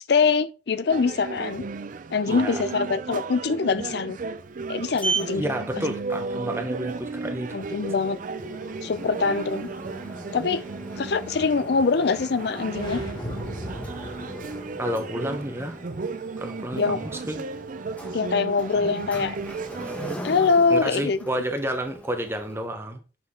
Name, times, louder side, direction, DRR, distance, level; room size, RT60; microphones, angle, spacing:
voice 1, 0.1-1.6 2.1-4.2 4.7-5.5 7.5-8.2 8.8-9.7 10.3-10.6 11.0-13.0 16.8-17.0 18.1-19.4 20.2-21.2, left 4 dB, 65° left, 0.5 m, -23 dB
sound 1, 0.9-20.1, right 4 dB, 50° right, 0.5 m, -35 dB
voice 2, 2.2-2.6 5.3-7.6 14.8-15.8 16.4-17.4 20.7-23.0, right 1 dB, 15° right, 1.0 m, -30 dB
Sliding door, 4.4-22.7, right 2 dB, 10° left, 1.4 m, -39 dB
sound 2, 12.7-14.9, left 1 dB, 25° left, 1.7 m, -37 dB
6.1 x 5.8 x 3.7 m
head